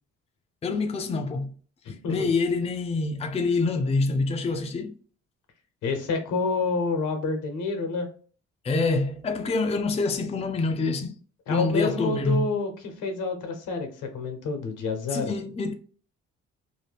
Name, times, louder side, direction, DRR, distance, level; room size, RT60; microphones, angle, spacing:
voice 1, 0.6-1.5 1.9-4.9 8.6-11.2 11.5-12.5 15.1-15.7, left 3 dB, 20° left, 0.4 m, -26 dB
voice 2, 1.8-2.3 5.8-8.1 11.5-15.3, left 3 dB, 85° left, 1.0 m, -28 dB
2.8 x 2.2 x 3.3 m
cardioid pair, 90°, 30 cm